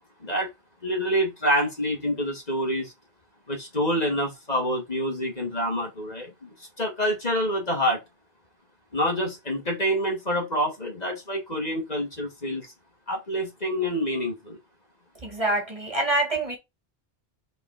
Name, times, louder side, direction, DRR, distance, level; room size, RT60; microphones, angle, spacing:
voice 1, 0.8-2.9 3.5-8.0 8.9-12.7 13.1-14.6, equal, 40° left, 2.1 m, -27 dB
voice 2, 15.2-16.6, right 2 dB, 35° right, 2.2 m, -25 dB
5.1 x 4.1 x 5.0 m
omnidirectional pair, 1.0 m